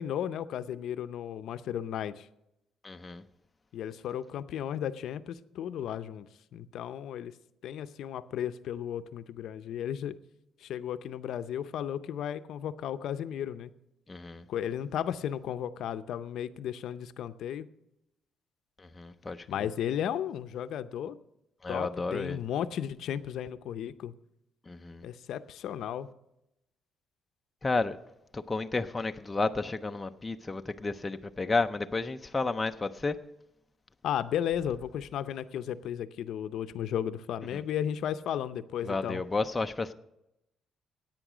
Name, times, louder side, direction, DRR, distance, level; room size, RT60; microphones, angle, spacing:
voice 1, 0.0-2.3 3.7-7.3 7.6-10.2 10.6-13.7 14.5-17.7 19.5-21.2 21.7-24.1 25.0-26.1 34.0-39.2, left 9 dB, 65° left, 0.6 m, -34 dB
voice 2, 2.8-3.2 14.1-14.4 18.8-19.6 21.6-22.4 24.7-25.0 27.6-28.0 28.3-33.2 37.5-37.6 38.8-39.9, left 3 dB, 15° left, 0.4 m, -32 dB
16.5 x 9.0 x 5.0 m
cardioid pair, 165°, 0 cm